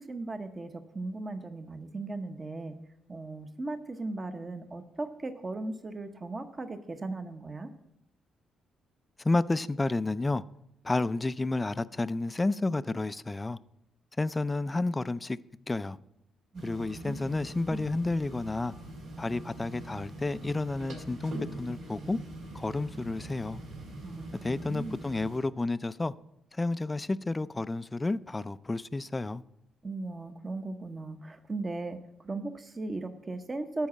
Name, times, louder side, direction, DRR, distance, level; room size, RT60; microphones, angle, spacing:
voice 1, 0.1-0.7 0.9-2.8 3.1-7.7 16.5-17.8 24.0-25.0 29.8-32.0 32.2-33.9, right 2 dB, 30° right, 0.8 m, -37 dB
voice 2, 9.2-10.4 10.8-13.6 14.2-15.4 15.7-16.0 16.6-18.7 19.2-22.2 22.5-23.6 24.4-26.1 26.5-29.4, left 2 dB, 20° left, 0.3 m, -31 dB
sound 1, 16.5-25.4, right 1 dB, 80° right, 2.7 m, -43 dB
12.5 x 4.8 x 7.3 m
cardioid pair, 90°, 0 cm